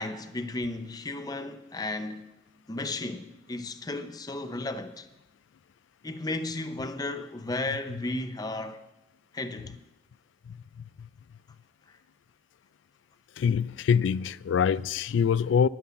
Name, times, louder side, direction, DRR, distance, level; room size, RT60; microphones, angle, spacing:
voice 1, 0.0-2.3 2.7-5.1 6.0-8.8 9.3-9.8, left 2 dB, 20° left, 0.6 m, -34 dB
voice 2, 13.4-15.7, left 7 dB, 85° left, 0.3 m, -24 dB
9.9 x 9.4 x 6.9 m
head